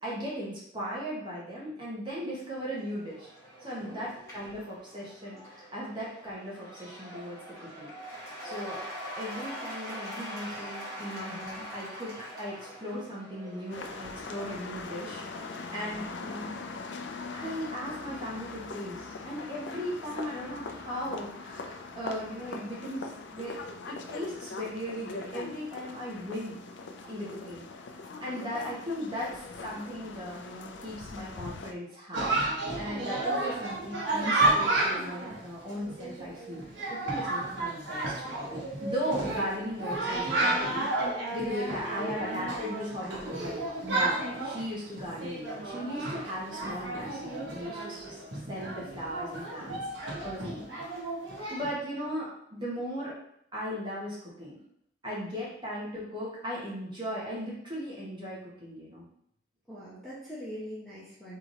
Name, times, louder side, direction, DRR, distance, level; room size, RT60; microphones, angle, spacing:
voice 1, 0.0-3.3 3.6-7.9 8.2-8.8 9.1-12.1 12.4-16.6 17.3-23.6 23.9-26.6 27.1-27.6 28.2-36.6 36.9-48.2 48.5-49.8 50.2-50.6 51.5-53.2 53.5-54.6 55.0-59.1, equal, 25° right, -6 dB, 1.6 m, -37 dB
Cheering / Applause / Crowd, 2.6-16.0, equal, 15° left, 1.5 m, -44 dB
voice 2, 3.8-4.2 50.5-50.8 59.7-61.4, equal, ahead, -10 dB, 1.0 m, -43 dB
sound 1, 13.7-31.7, left 3 dB, 70° left, 0.5 m, -41 dB
Chatter, 32.1-51.7, right 2 dB, 80° right, 1.2 m, -32 dB
3.7 x 3.3 x 4.1 m, 0.71 s
head